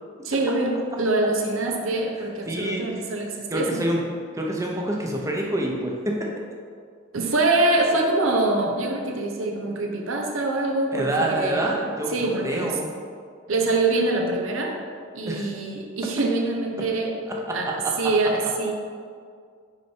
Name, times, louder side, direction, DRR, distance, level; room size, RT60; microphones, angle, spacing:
voice 1, 0.2-3.8 7.1-11.7 12.1-12.7 13.5-14.7 15.1-17.1 17.5-17.7 18.0-18.7, right 2 dB, 80° right, 1 dB, 0.9 m, -24 dB
voice 2, 2.5-3.0 3.5-4.0 4.3-6.3 10.9-12.9 15.3-15.5 16.0-16.1 17.3-17.9, right 1 dB, 15° right, -1 dB, 0.8 m, -27 dB
6.3 x 4.6 x 4.5 m, 2.1 s
head